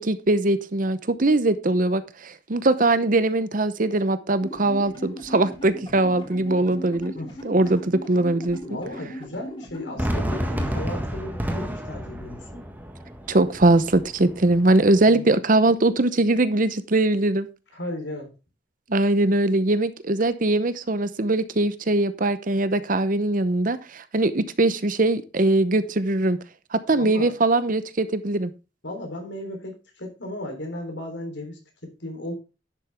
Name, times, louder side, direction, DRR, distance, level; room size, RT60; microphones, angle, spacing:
voice 1, 0.0-7.1 7.4-8.6 13.3-17.5 18.9-26.4 26.7-28.5, right 2 dB, 50° right, 13 dB, 0.8 m, -21 dB
sound 1, 4.4-10.7, equal, 30° left, 2.9 m, -38 dB
voice 2, 8.6-12.6 15.0-15.4 17.7-18.3 26.9-27.3 28.8-32.3, left 1 dB, 80° left, 3 dB, 3.6 m, -35 dB
Fireworks, 10.0-15.0, equal, 10° right, 1.6 m, -30 dB
10.5 x 7.5 x 3.5 m, 0.30 s
head